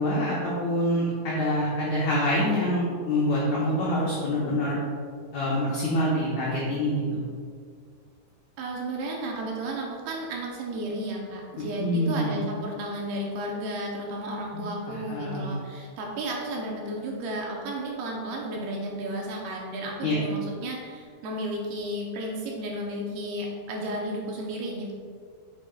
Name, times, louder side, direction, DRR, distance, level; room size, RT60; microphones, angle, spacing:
voice 1, 0.0-4.8 5.3-7.2 11.8-12.3 14.5-15.6 20.0-20.2, left 1 dB, 85° left, -7 dB, 1.6 m, -26 dB
voice 2, 8.6-24.9, right 1 dB, 75° right, -1 dB, 2.5 m, -33 dB
7.8 x 7.2 x 2.3 m, 2.1 s
omnidirectional pair, 4.9 m